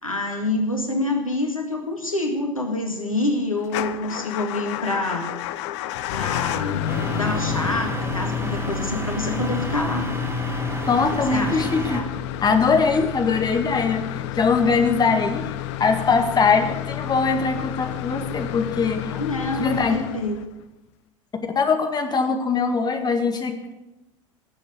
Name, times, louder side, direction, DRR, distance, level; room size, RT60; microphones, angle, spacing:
voice 1, 0.0-5.4 6.1-10.1 11.3-11.6 19.1-20.4, left 2 dB, 90° left, 3 dB, 2.0 m, -27 dB
Motor vehicle (road) / Engine starting / Idling, 3.6-20.6, left 13 dB, 55° left, 0.8 m, -30 dB
sound 1, 6.9-12.0, right 3 dB, 15° right, 1.7 m, -30 dB
voice 2, 10.9-12.1 12.4-15.4 15.8-19.0 19.6-20.0 21.6-23.7, left 5 dB, 25° left, 5 dB, 2.0 m, -21 dB
17.5 x 7.7 x 9.5 m, 1.0 s
figure-of-eight pair, 75°, 17 cm